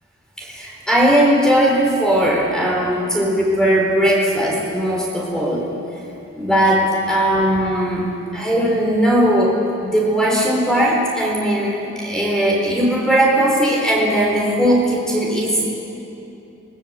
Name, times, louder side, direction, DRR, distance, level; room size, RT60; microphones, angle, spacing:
voice 1, 0.4-5.7 6.3-8.1 8.3-15.7, equal, 5° left, -3 dB, 4.1 m, -18 dB
28.0 x 22.0 x 7.7 m, 2.9 s
head